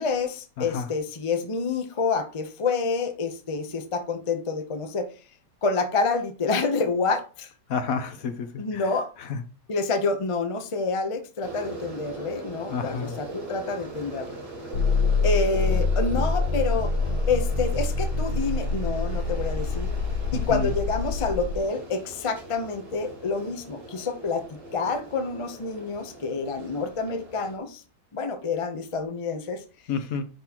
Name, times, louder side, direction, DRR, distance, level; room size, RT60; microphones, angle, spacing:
voice 1, 0.0-5.1 5.6-7.5 8.6-9.1 9.7-14.4 15.2-16.9 17.3-19.9 20.3-27.8 28.1-29.6, left 4 dB, 45° left, 0.4 m, -28 dB
voice 2, 0.6-0.9 7.7-8.9 9.2-9.4 12.7-13.2 20.3-20.7 29.9-30.2, left 5 dB, 65° left, 1.0 m, -30 dB
sound 1, 11.4-27.6, right 2 dB, 45° right, 2.5 m, -41 dB
sound 2, 14.7-21.6, left 3 dB, 80° left, 1.5 m, -25 dB
10.0 x 4.1 x 2.9 m
omnidirectional pair, 1.9 m